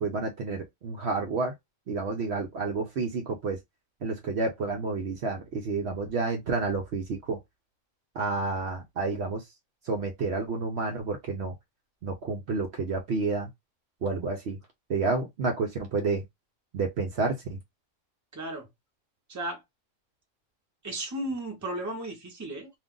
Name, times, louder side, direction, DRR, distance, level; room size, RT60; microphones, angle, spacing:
voice 1, 0.0-1.5 1.9-3.6 4.0-7.4 8.2-9.4 9.8-11.5 12.0-13.5 14.0-14.6 14.9-16.2 16.7-17.6, right 3 dB, 60° right, 0.8 m, -30 dB
voice 2, 18.3-18.7 19.3-19.6 20.8-22.7, right 1 dB, 15° right, 0.8 m, -34 dB
2.5 x 2.4 x 3.6 m
omnidirectional pair, 1.4 m